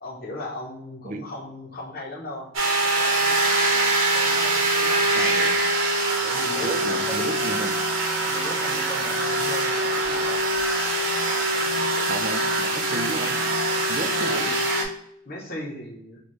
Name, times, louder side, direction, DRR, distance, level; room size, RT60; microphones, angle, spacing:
voice 1, 0.0-2.5 2.8-3.9 4.1-5.4 6.2-7.3 8.3-10.4 14.2-14.6 15.2-16.2, left 1 dB, 45° left, -6 dB, 0.8 m, -37 dB
sound 1, 2.5-14.8, right 2 dB, 80° right, 1.0 m, -23 dB
voice 2, 5.2-5.5 6.6-7.8 11.9-13.4 13.9-14.5, right 2 dB, 40° right, 6 dB, 0.4 m, -33 dB
4.3 x 2.3 x 3.0 m, 0.72 s
head